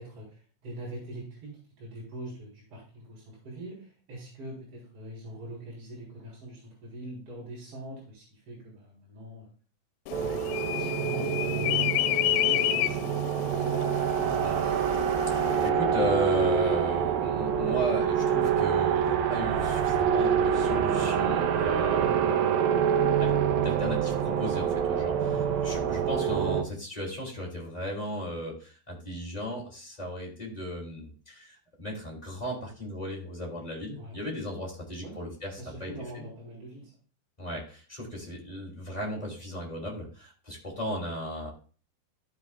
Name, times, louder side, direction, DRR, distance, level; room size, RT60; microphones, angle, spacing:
voice 1, 0.0-9.5 10.2-12.2 12.5-13.2 13.6-14.7 22.0-22.4 25.2-25.5 34.0-34.2 35.0-35.2 35.6-36.9, right 1 dB, 35° right, -6 dB, 4.3 m, -43 dB
sound 1, 10.1-15.7, left 15 dB, 85° left, 2.8 m, -30 dB
sound 2, 10.1-26.6, right 8 dB, 75° right, 2.3 m, -26 dB
voice 2, 15.3-23.3 23.6-36.2 37.4-41.5, equal, 15° left, -4 dB, 1.8 m, -36 dB
14.0 x 7.3 x 2.3 m, 0.39 s
omnidirectional pair, 5.1 m